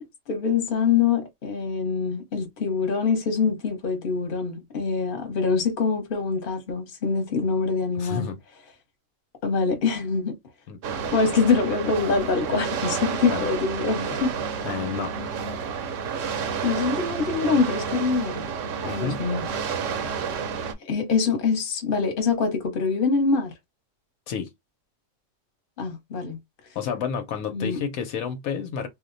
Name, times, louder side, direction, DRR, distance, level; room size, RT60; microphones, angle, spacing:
voice 1, 0.0-8.3 9.4-10.4 11.1-14.3 16.1-16.3 16.6-18.5 18.8-19.4 20.8-23.5 25.8-26.4 27.5-27.8, left 5 dB, 45° left, 1.1 m, -24 dB
voice 2, 8.0-8.4 10.7-10.8 13.3-13.5 14.6-15.1 18.8-19.2 24.3-24.5 26.7-28.9, left 7 dB, 85° left, 1.1 m, -30 dB
sound 1, 10.8-20.7, right 6 dB, 70° right, 0.9 m, -30 dB
2.6 x 2.1 x 3.8 m
omnidirectional pair, 1.4 m